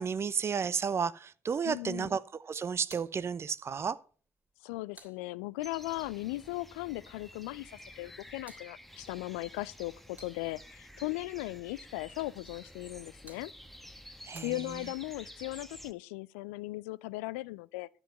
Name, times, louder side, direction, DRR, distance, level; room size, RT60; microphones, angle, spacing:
voice 1, 0.0-4.0 14.2-14.9, right 6 dB, 35° right, 0.7 m, -33 dB
voice 2, 1.7-2.1 4.6-13.5 14.4-17.9, left 20 dB, 70° left, 0.4 m, -38 dB
sound 1, 2.8-5.9 7.8-10.8 12.8-15.2, right 1 dB, 20° right, 3.1 m, -60 dB
sound 2, 5.6-15.9, equal, ahead, 1.2 m, -51 dB
12.0 x 8.1 x 5.6 m
figure-of-eight pair, 45°, 8 cm